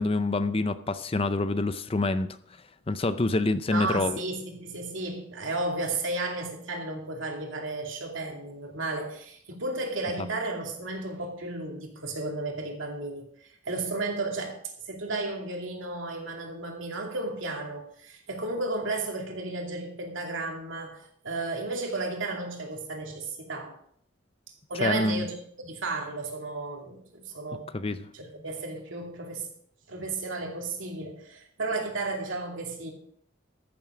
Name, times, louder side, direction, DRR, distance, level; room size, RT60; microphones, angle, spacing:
voice 1, 0.0-2.4 2.9-4.2 24.8-25.3 27.7-28.0, left 2 dB, 30° left, 12 dB, 0.5 m, -26 dB
voice 2, 3.7-13.2 13.6-14.6 14.9-23.8 24.7-29.5 29.9-32.9, right 2 dB, 75° right, 1 dB, 2.5 m, -33 dB
14.0 x 7.4 x 4.9 m, 0.65 s
head